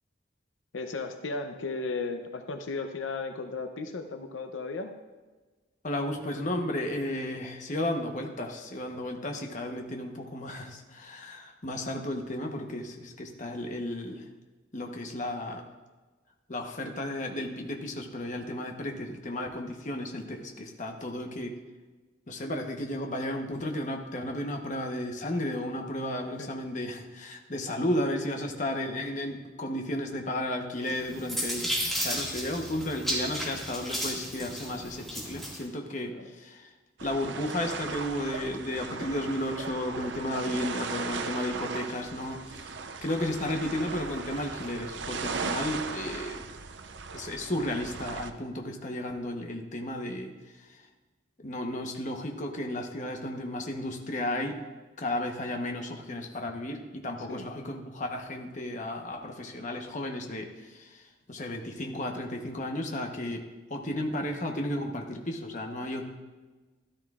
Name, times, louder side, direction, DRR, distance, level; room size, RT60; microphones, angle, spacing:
voice 1, 0.7-4.9 26.4-26.5 36.0-36.3 57.2-57.5, left 3 dB, 85° left, 6 dB, 0.6 m, -35 dB
voice 2, 5.8-14.2 14.7-15.6 16.5-21.6 22.3-36.7 37.0-42.7 43.0-46.4 47.1-50.3 50.7-50.8 51.4-54.6 55.0-61.0 61.3-66.1, left 1 dB, 40° left, 3 dB, 1.0 m, -33 dB
sound 1, 30.9-35.6, equal, ahead, 2.0 m, -33 dB
sound 2, 37.0-48.3, right 4 dB, 65° right, 0.6 m, -37 dB
13.0 x 13.0 x 2.4 m, 1.3 s
head